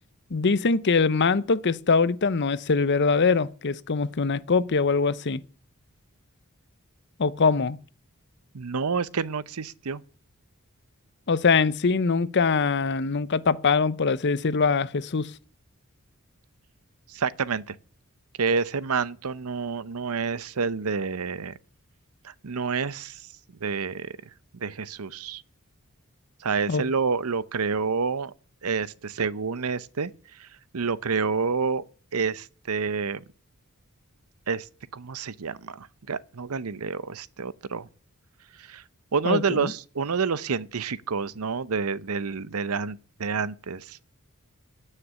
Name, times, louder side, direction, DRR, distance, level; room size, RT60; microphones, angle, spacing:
voice 1, 0.3-5.4 7.2-7.8 11.3-15.3 26.7-26.8 39.2-39.7, left 4 dB, 50° left, 0.7 m, -23 dB
voice 2, 8.5-10.0 17.1-17.8 18.4-21.5 22.2-23.2 23.6-24.1 24.6-25.4 26.4-28.3 28.6-30.1 30.4-30.5 30.7-31.8 32.1-33.2 34.5-34.7 34.9-37.9 38.6-38.8 39.1-44.0, right 5 dB, 85° right, 0.7 m, -28 dB
16.5 x 6.7 x 10.0 m
head